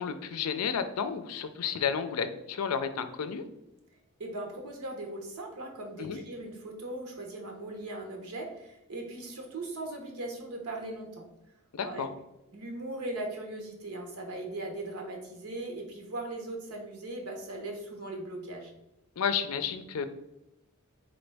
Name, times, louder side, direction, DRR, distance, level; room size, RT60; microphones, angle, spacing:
voice 1, 0.0-3.4 6.0-6.2 11.7-12.1 19.2-20.0, left 6 dB, 75° left, 10 dB, 0.5 m, -31 dB
voice 2, 4.2-11.2 11.8-12.1 12.5-18.7, right 2 dB, 85° right, 2 dB, 1.0 m, -39 dB
4.0 x 3.9 x 3.3 m, 0.91 s
head